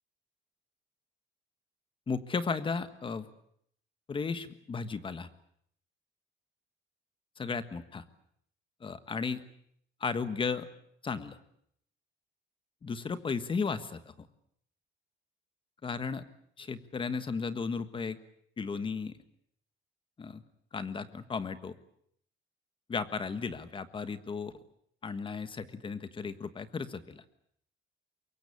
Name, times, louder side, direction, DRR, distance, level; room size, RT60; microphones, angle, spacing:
voice 1, 2.1-3.3 4.1-5.3 7.4-8.0 8.8-9.4 10.0-10.7 11.0-11.4 12.8-14.3 15.8-16.2 16.6-18.2 18.6-19.2 20.2-20.4 20.7-21.7 22.9-24.5 25.0-27.2, left 5 dB, 25° left, 12 dB, 1.5 m, -35 dB
24.5 x 22.5 x 8.6 m, 0.67 s
cardioid pair, 165°, 20 cm